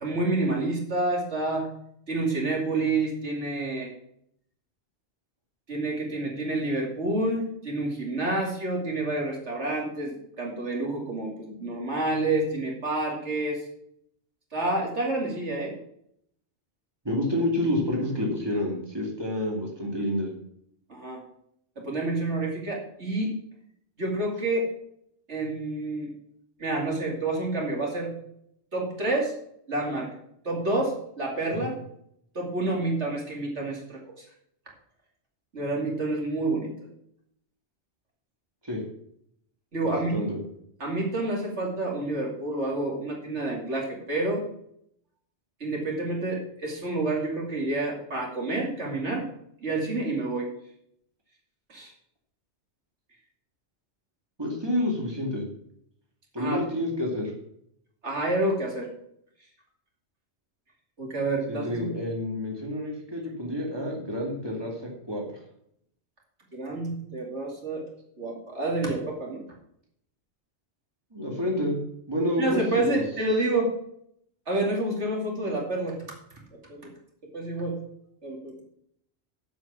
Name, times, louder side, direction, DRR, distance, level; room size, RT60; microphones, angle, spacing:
voice 1, 0.0-1.7 2.1-3.9 5.7-13.6 14.5-15.8 20.9-21.2 21.8-23.3 24.0-24.7 25.3-26.1 26.6-28.1 28.7-29.3 29.7-30.1 30.4-31.8 32.3-34.2 35.5-36.7 39.7-40.2 40.8-44.4 45.6-49.3 49.6-50.5 51.7-51.9 56.4-56.6 58.0-58.9 61.0-61.9 66.5-67.9 68.2-69.4 72.4-73.7 74.5-76.0 76.7-76.9 77.3-77.8 78.2-78.6, right 2 dB, 75° right, -1 dB, 2.9 m, -28 dB
voice 2, 17.0-20.3 31.5-31.7 38.6-38.8 39.8-40.4 54.4-55.4 56.3-57.3 61.5-65.4 71.1-71.8 72.1-72.6 72.9-73.0, left 1 dB, 20° right, -1 dB, 2.5 m, -29 dB
8.0 x 7.7 x 7.1 m, 0.70 s
omnidirectional pair, 1.2 m